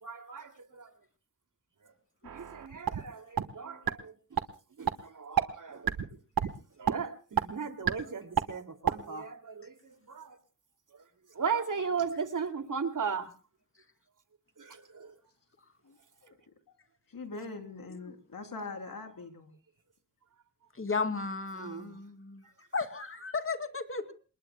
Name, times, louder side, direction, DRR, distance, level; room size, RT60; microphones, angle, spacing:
voice 1, 0.0-0.9 2.3-4.1 4.8-5.9 6.8-10.4 11.3-13.3 14.6-15.1 21.5-22.0, right 6 dB, 60° right, 6 dB, 2.5 m, -37 dB
sound 1, 2.3-3.0 3.4-3.5 3.9-4.0 4.4-4.5 4.9-5.0 5.4-5.5 5.9-6.1 6.4-6.5 6.9-7.0 7.4-7.5 7.9-8.0 8.4-8.5 8.9-9.0, right 8 dB, 85° right, 1.3 m, -27 dB
voice 2, 17.1-19.5, left 3 dB, 75° left, 5 dB, 3.3 m, -42 dB
voice 3, 20.7-22.4 22.7-24.1, left 4 dB, 40° left, 8 dB, 2.4 m, -34 dB
28.5 x 20.5 x 2.2 m, 0.36 s
cardioid pair, 50°, 35 cm